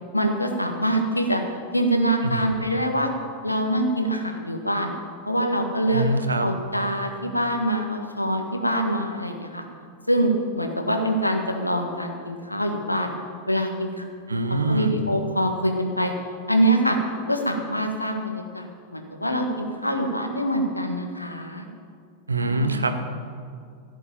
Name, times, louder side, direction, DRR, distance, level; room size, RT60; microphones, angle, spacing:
voice 1, 0.1-1.4 1.7-3.1 3.4-4.9 5.3-6.0 6.4-9.6 10.1-13.1 13.5-14.0 14.7-16.1 16.5-17.0 17.3-18.6 18.9-21.6 22.4-22.8, right 1 dB, 85° left, 3 dB, 1.7 m, -24 dB
voice 2, 5.9-6.5 14.3-15.0 22.3-23.0, right 2 dB, 80° right, 7 dB, 1.2 m, -24 dB
16.5 x 6.5 x 9.0 m, 2.2 s
figure-of-eight pair, 90°, 0 cm